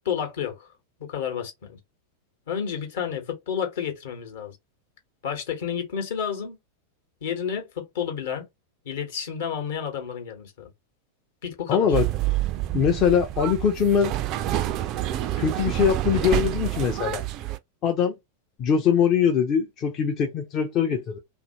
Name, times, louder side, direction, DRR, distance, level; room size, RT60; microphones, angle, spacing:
voice 1, 0.0-0.7 1.0-1.8 2.5-4.6 5.2-6.6 7.2-8.4 8.8-10.7 11.4-12.0, left 8 dB, 55° left, 1.0 m, -30 dB
voice 2, 11.7-12.1 12.7-14.1 15.4-17.2 17.8-18.1 18.6-21.2, left 7 dB, 35° left, 0.5 m, -22 dB
sound 1, 11.9-17.6, right 14 dB, 40° right, 0.3 m, -27 dB
2.7 x 2.5 x 2.6 m
figure-of-eight pair, 90°, 0 cm